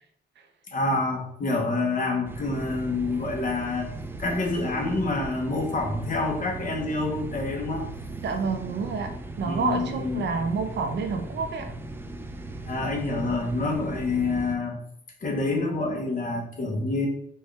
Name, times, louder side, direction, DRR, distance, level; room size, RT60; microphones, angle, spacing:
voice 1, 0.7-3.9 4.2-7.9 9.4-10.2 12.7-14.8 15.2-17.1, left 3 dB, 40° left, 1 dB, 0.9 m, -27 dB
sound 1, 2.2-14.5, right 2 dB, 10° right, 0.3 m, -38 dB
voice 2, 8.2-9.1 9.4-11.7, right 4 dB, 60° right, 5 dB, 0.6 m, -28 dB
4.3 x 2.4 x 3.2 m, 0.70 s
cardioid pair, 110°, 20 cm